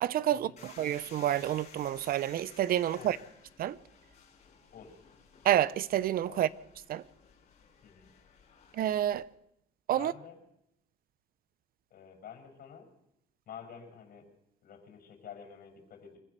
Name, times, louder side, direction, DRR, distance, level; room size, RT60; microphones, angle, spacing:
voice 1, 0.0-3.2 3.6-3.8 5.4-6.5 6.9-7.0 8.7-9.2 9.9-10.1, right 12 dB, 60° right, 0.8 m, -29 dB
sound 1, 0.6-9.2, left 6 dB, 45° left, 6.8 m, -56 dB
voice 2, 9.9-10.4 11.9-12.9 13.5-14.3 14.6-16.2, left 7 dB, 60° left, 6.0 m, -49 dB
25.0 x 15.5 x 6.8 m
cardioid pair, 110°, 17 cm